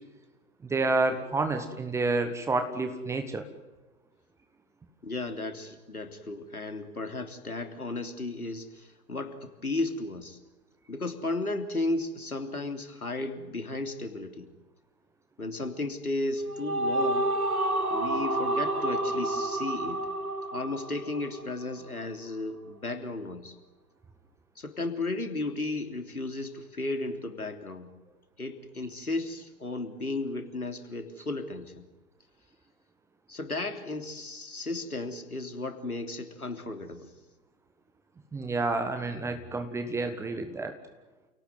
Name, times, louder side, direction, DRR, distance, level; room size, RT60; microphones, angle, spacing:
voice 1, 0.6-3.4 38.3-40.7, right 3 dB, 5° right, 7 dB, 1.3 m, -29 dB
voice 2, 5.0-10.4 10.9-14.5 15.4-17.3 17.9-20.0 20.5-23.6 24.6-27.9 28.4-31.9 33.3-37.1, left 2 dB, 80° left, 6 dB, 3.4 m, -34 dB
sound 1, 16.2-21.7, right 1 dB, 75° right, 2.3 m, -29 dB
29.0 x 18.0 x 9.5 m, 1.2 s
figure-of-eight pair, 120°, 43 cm